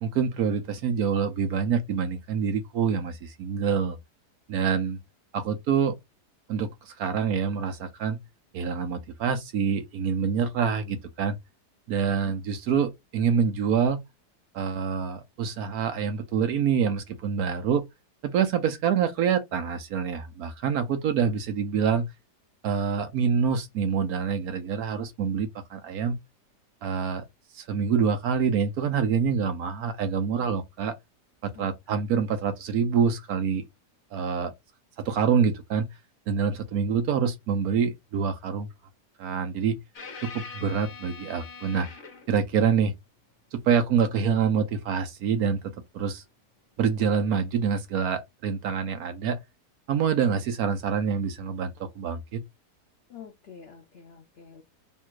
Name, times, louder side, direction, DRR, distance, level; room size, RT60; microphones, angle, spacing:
voice 1, 0.0-4.0 4.5-5.0 5.3-5.9 6.5-8.2 8.5-11.4 11.9-14.0 14.5-17.8 18.2-22.1 22.6-26.2 26.8-27.2 27.5-30.9 31.4-33.6 34.1-34.5 35.0-35.9 36.3-38.7 39.2-39.8 40.2-41.9 42.3-42.9 43.5-46.2 46.8-49.4 49.9-52.4, right 6 dB, 65° right, 1.2 m, -26 dB
sound 1, 39.9-42.4 45.4-45.6 47.4-47.5, left 5 dB, 50° left, 1.2 m, -43 dB
voice 2, 53.1-54.6, left 7 dB, 70° left, 0.6 m, -47 dB
3.3 x 2.4 x 4.4 m
omnidirectional pair, 1.8 m